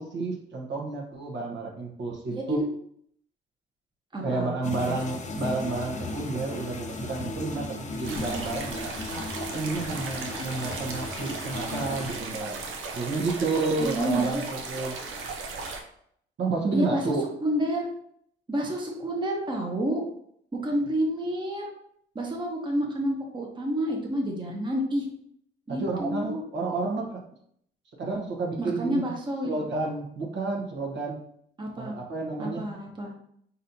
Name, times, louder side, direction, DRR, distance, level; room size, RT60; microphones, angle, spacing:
voice 1, 0.0-2.6 4.2-8.9 9.5-12.6 12.9-15.0 16.4-17.3 25.7-27.2 28.0-29.1 29.4-31.2 31.8-32.7, right 3 dB, 65° right, -1 dB, 1.2 m, -30 dB
voice 2, 2.3-2.7 4.1-5.0 13.8-14.4 16.7-17.1 17.4-17.9 18.5-20.0 20.6-21.7 22.1-25.1 25.7-26.4 28.6-29.5 31.6-31.9 32.4-33.1, equal, 25° right, 0 dB, 1.0 m, -29 dB
sound 1, 4.6-12.2, left 3 dB, 35° left, 0.7 m, -36 dB
sound 2, 8.0-15.8, right 4 dB, 80° right, 0.7 m, -36 dB
4.1 x 4.1 x 2.7 m, 0.68 s
cardioid pair, 90°, 20 cm